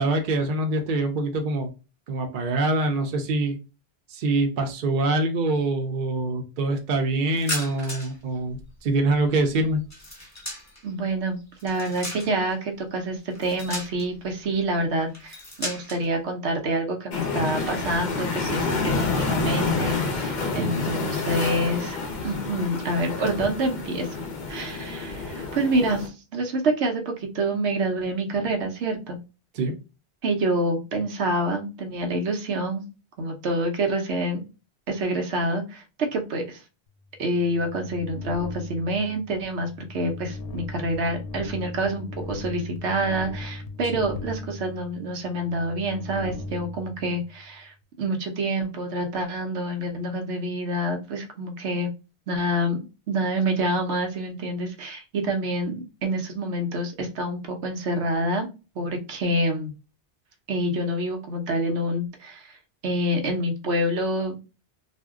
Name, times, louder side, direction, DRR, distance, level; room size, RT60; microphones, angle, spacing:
voice 1, 0.0-1.7 2.1-3.6 4.1-9.9 20.5-20.9 29.5-29.7, right 2 dB, 55° right, 5 dB, 0.7 m, -25 dB
sound 1, 7.3-8.2 8.5-10.9 11.4-12.5 13.3-14.3 15.1-16.1, left 1 dB, 15° left, 0.8 m, -36 dB
voice 2, 10.8-22.0 22.2-29.2 30.2-32.8 33.2-34.4 34.9-35.8 36.1-36.6 37.2-51.9 52.3-58.5 58.8-59.7 60.5-62.6 62.8-64.4, right 1 dB, 80° right, 3 dB, 1.0 m, -27 dB
sound 2, 17.1-26.1, left 3 dB, 50° left, 0.6 m, -28 dB
sound 3, 37.0-47.7, left 2 dB, 90° left, 0.9 m, -38 dB
2.6 x 2.1 x 3.5 m, 0.30 s
omnidirectional pair, 1.1 m